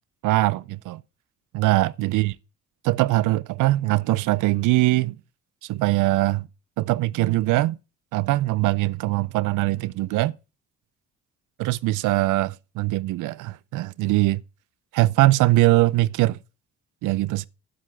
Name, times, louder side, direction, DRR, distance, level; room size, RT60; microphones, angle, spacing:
voice 1, 0.2-1.0 1.5-2.3 2.8-5.2 5.6-6.5 6.8-7.8 8.1-10.4 11.6-14.4 14.9-16.4 17.0-17.5, right 18 dB, 90° right, 0.5 m, -22 dB
9.9 x 7.7 x 4.7 m
cardioid pair, 90°, 30 cm